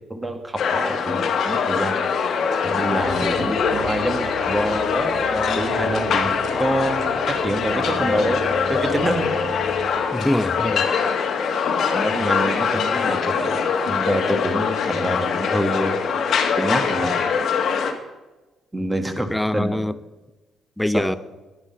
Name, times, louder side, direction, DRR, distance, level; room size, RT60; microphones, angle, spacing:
voice 1, 0.1-2.0 2.6-7.1 7.4-8.4 8.7-9.3 11.9-15.9 16.6-17.2 18.7-19.8 20.9-21.0, right 1 dB, 15° right, 1.4 m, -26 dB
sound 1, 0.6-17.9, left 6 dB, 65° left, 1.2 m, -23 dB
sound 2, 3.0-9.9, right 4 dB, 65° right, 1.9 m, -34 dB
voice 2, 3.2-3.5 3.9-4.0 10.1-10.9 19.3-20.0 20.8-21.2, left 1 dB, 5° left, 0.5 m, -24 dB
10.5 x 9.7 x 5.4 m
cardioid pair, 90°, 0 cm